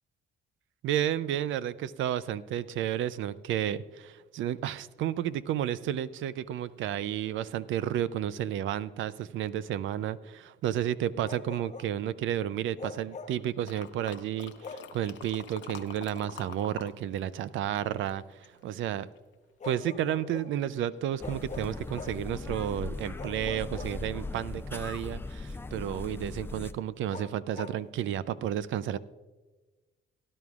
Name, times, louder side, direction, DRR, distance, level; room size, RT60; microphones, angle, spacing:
voice 1, 0.8-19.1 19.6-29.0, right 11 dB, 75° right, 17 dB, 0.5 m, -32 dB
Bark, 11.2-12.0 12.8-13.5 14.6-15.0 16.6-16.8 19.6-20.6 21.2-22.3 23.2-24.4 27.1-27.8, left 4 dB, 35° left, 0.9 m, -44 dB
sound 1, 13.7-16.9 17.2-18.6 19.2-19.3, left 9 dB, 70° left, 0.8 m, -46 dB
sound 2, 21.2-26.7, left 3 dB, 10° left, 0.4 m, -38 dB
17.5 x 11.0 x 2.4 m, 1.2 s
cardioid pair, 90°, 20 cm